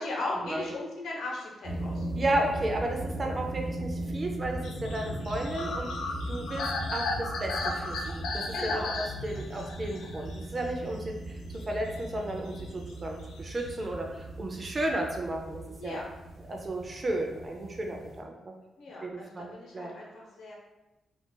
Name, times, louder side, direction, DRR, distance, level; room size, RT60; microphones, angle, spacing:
voice 1, 0.0-2.1 8.5-9.0 15.8-16.0 18.8-20.6, left 2 dB, 70° left, -3 dB, 0.8 m, -37 dB
sound 1, 1.6-18.2, right 1 dB, 60° right, 0.7 m, -39 dB
voice 2, 2.2-5.9 6.3-11.4 11.7-16.0 16.5-18.5 19.0-19.9, right 1 dB, 25° right, 1 dB, 0.4 m, -33 dB
sound 2, 4.6-11.1 11.5-12.9 13.2-13.8, left 3 dB, 90° left, 0.4 m, -36 dB
2.4 x 2.2 x 3.8 m, 0.99 s
wide cardioid pair, 160°, 0 cm